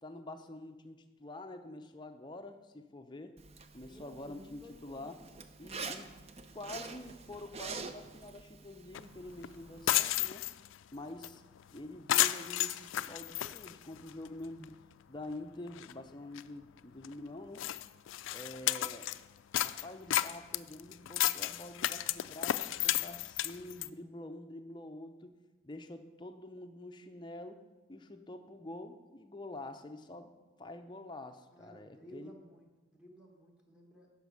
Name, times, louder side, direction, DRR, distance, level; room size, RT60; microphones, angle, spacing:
voice 1, 0.0-3.4 3.7-5.2 5.6-6.1 6.5-10.5 10.9-11.4 11.7-14.7 15.1-17.7 18.3-19.1 19.6-25.4 25.6-27.6 27.9-32.3, left 2 dB, 20° left, 6 dB, 0.5 m, -47 dB
Zipper (clothing), 3.4-10.1, right 4 dB, 30° right, 0.5 m, -47 dB
voice 2, 3.8-5.2 31.5-34.1, equal, 5° right, -1 dB, 1.3 m, -55 dB
sound 1, 8.9-9.0 9.4-9.5 9.8-10.8 11.2-11.3 11.6-11.8 12.1-14.3 14.6-14.7 15.3-15.4 15.7-15.9 16.4-16.5 17.0-17.1 17.6-19.2 19.5-23.9, left 13 dB, 75° left, 0.3 m, -32 dB
11.0 x 5.2 x 6.8 m, 1.2 s
head